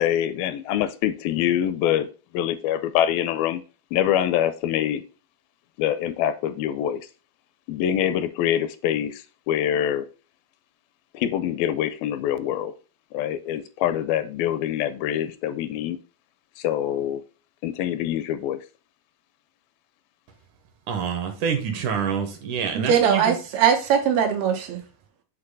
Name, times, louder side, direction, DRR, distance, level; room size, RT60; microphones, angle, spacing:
voice 1, 0.0-2.1 2.3-3.6 3.9-5.0 5.8-7.0 7.7-10.1 11.1-12.7 13.1-16.0 16.6-17.2 17.6-18.6, left 10 dB, 85° left, 12 dB, 2.3 m, -25 dB
voice 2, 20.9-23.3, right 7 dB, 70° right, 5 dB, 2.1 m, -26 dB
voice 3, 22.7-24.8, right 8 dB, 90° right, 3 dB, 3.2 m, -21 dB
8.2 x 2.9 x 5.3 m, 0.35 s
omnidirectional pair, 4.3 m